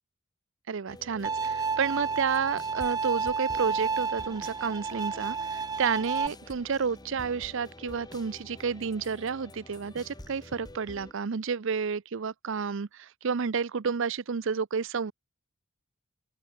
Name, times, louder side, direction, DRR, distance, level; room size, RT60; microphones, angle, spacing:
voice 1, 0.7-15.1, right 6 dB, 65° right, 0.6 m, -31 dB
sound 1, 0.9-11.1, left 1 dB, 20° left, 1.6 m, -48 dB
Bowed string instrument, 1.2-6.3, right 5 dB, 20° right, 0.4 m, -31 dB
sound 2, 1.6-2.9 3.2-9.3 9.6-11.2, right 1 dB, 35° right, 6.0 m, -67 dB
open air
head